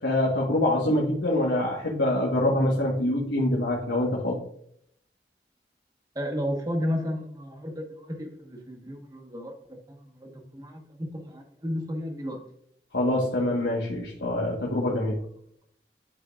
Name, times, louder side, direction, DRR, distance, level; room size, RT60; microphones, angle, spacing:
voice 1, 0.0-4.4 12.9-15.2, left 1 dB, 90° left, -3 dB, 1.4 m, -25 dB
voice 2, 6.1-12.4, equal, 20° right, 2 dB, 1.2 m, -33 dB
11.0 x 5.0 x 2.4 m, 0.68 s
head